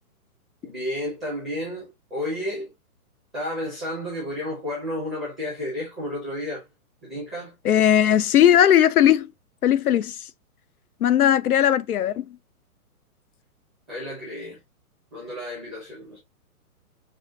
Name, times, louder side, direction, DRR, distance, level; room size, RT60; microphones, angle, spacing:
voice 1, 0.6-2.7 3.3-6.7 7.0-7.5 13.9-14.6 15.1-16.2, left 1 dB, ahead, 0.6 m, -32 dB
voice 2, 7.6-9.3 9.6-10.2 11.0-12.3, left 10 dB, 75° left, 0.7 m, -18 dB
6.3 x 2.4 x 2.6 m
hypercardioid pair, 170°, 45 cm